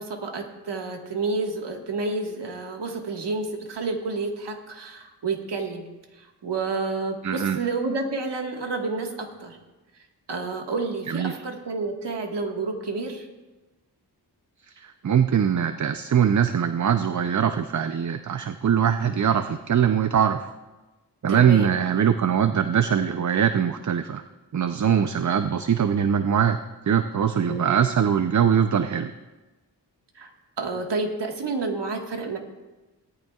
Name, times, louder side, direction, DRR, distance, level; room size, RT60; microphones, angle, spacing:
voice 1, 0.0-5.9 6.2-9.6 10.3-13.3 21.3-21.7 27.5-27.8 30.2-30.3 30.6-32.4, right 3 dB, 75° right, 2 dB, 1.8 m, -30 dB
voice 2, 7.2-7.6 11.1-11.3 14.8-20.5 21.2-24.2 24.5-26.6 26.9-29.1, right 8 dB, 45° right, 9 dB, 0.6 m, -22 dB
17.5 x 13.5 x 2.4 m, 1.1 s
cardioid pair, 65°, 41 cm